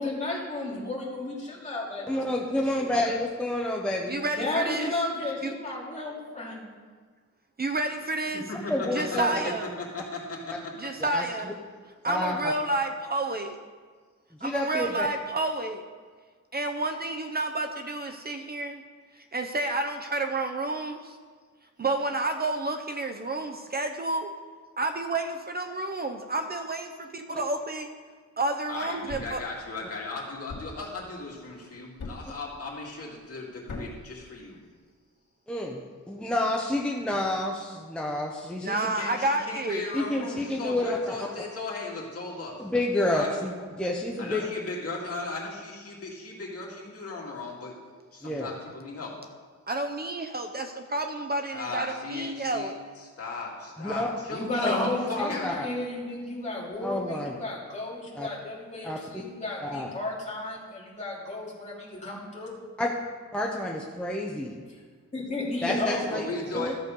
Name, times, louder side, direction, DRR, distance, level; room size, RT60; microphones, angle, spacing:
voice 1, 0.0-3.1 4.3-6.6 12.1-12.3 54.3-62.5 64.7-64.8 65.1-66.2, left 2 dB, 25° left, -5 dB, 2.5 m, -33 dB
voice 2, 2.1-4.2 8.7-9.3 11.0-11.2 12.1-12.5 14.4-15.1 35.5-35.8 36.1-38.9 39.9-41.2 42.6-44.4 48.2-48.5 53.8-54.1 54.6-54.7 55.2-55.7 56.8-57.4 58.2-58.3 58.8-59.0 59.6-59.9 62.8-62.9 63.3-64.5 65.6-66.2 66.5-66.7, left 1 dB, 5° left, -1 dB, 0.7 m, -29 dB
voice 3, 4.1-4.9 5.4-5.5 7.6-8.5 8.9-9.7 10.8-11.5 12.0-13.6 14.4-15.8 16.5-18.8 19.2-21.2 21.8-24.3 24.8-27.9 28.4-29.4 38.6-39.8 49.7-52.7, right 2 dB, 35° right, 6 dB, 0.5 m, -30 dB
voice 4, 8.5-9.4 9.9-10.7 11.3-11.4 28.7-34.6 38.7-42.6 43.1-43.5 44.2-47.7 48.1-49.1 51.5-52.7 53.0-55.5 66.1-66.7, left 3 dB, 55° left, -3 dB, 2.3 m, -37 dB
Thump thud, 29.1-29.5 30.5-30.9 32.0-32.4 33.7-34.1, left 3 dB, 85° left, 1.9 m, -39 dB
13.5 x 6.9 x 5.3 m, 1.5 s
wide cardioid pair, 180°, 29 cm